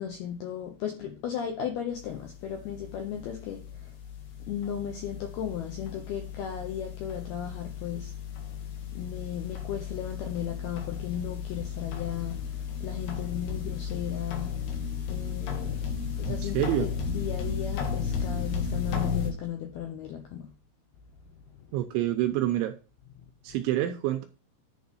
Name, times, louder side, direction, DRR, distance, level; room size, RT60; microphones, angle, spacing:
voice 1, 0.0-3.9 4.4-8.1 8.9-14.6 15.1-20.5 21.5-21.7, left 9 dB, 75° left, 2.3 m, -36 dB
sound 1, 1.9-19.3, left 6 dB, 60° left, 3.1 m, -34 dB
voice 2, 16.3-16.9 21.7-22.8 23.4-24.3, right 14 dB, 85° right, 2.8 m, -27 dB
10.5 x 4.7 x 5.4 m
omnidirectional pair, 5.9 m